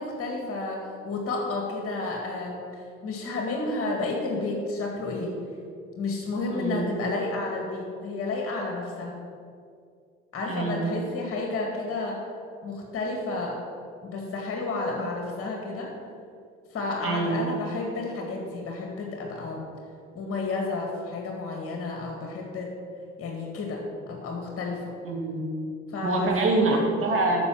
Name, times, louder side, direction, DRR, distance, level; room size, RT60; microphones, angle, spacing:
voice 1, 0.0-2.6 3.0-5.4 6.0-9.1 10.3-12.2 12.6-13.6 14.0-15.9 16.7-19.7 20.1-22.7 23.2-24.8 25.9-26.9, left 3 dB, 40° left, 0 dB, 2.2 m, -31 dB
voice 2, 6.5-7.0 10.5-10.9 17.0-17.5 25.0-25.4 26.0-27.4, right 2 dB, 35° right, 0 dB, 2.7 m, -25 dB
9.6 x 5.9 x 7.7 m, 2.3 s
hypercardioid pair, 65°, 35 cm